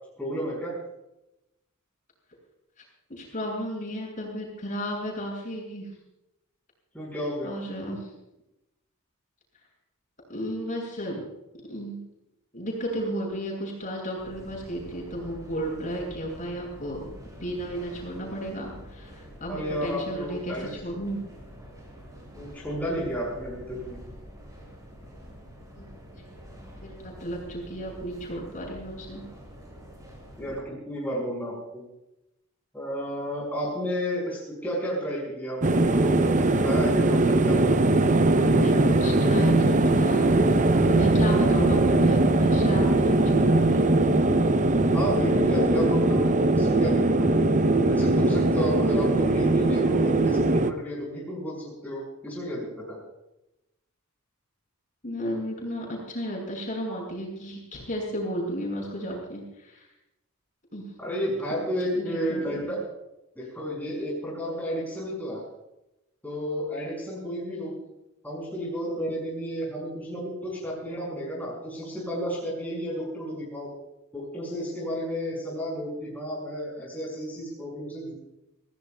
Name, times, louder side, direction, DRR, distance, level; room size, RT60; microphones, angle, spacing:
voice 1, 0.2-0.7 6.9-7.5 19.5-21.0 22.3-24.0 30.4-31.8 32.7-38.0 44.9-47.3 47.9-53.0 61.0-62.8 63.4-65.4 66.2-67.8 68.2-73.7 74.1-78.1, equal, 10° left, -5 dB, 6.0 m, -32 dB
voice 2, 3.1-5.9 7.4-8.1 10.3-11.3 11.7-12.1 12.5-17.1 17.4-21.2 25.8-25.9 26.1-26.4 26.8-29.2 38.3-40.5 40.9-43.9 55.0-59.9 60.7-60.9 61.9-62.7, equal, 40° left, -3 dB, 7.5 m, -33 dB
sound 1, 14.2-30.6, equal, 15° right, 5.9 m, -46 dB
sound 2, 35.6-50.7, right 2 dB, 35° right, 0.7 m, -21 dB
27.5 x 17.0 x 2.4 m, 0.91 s
head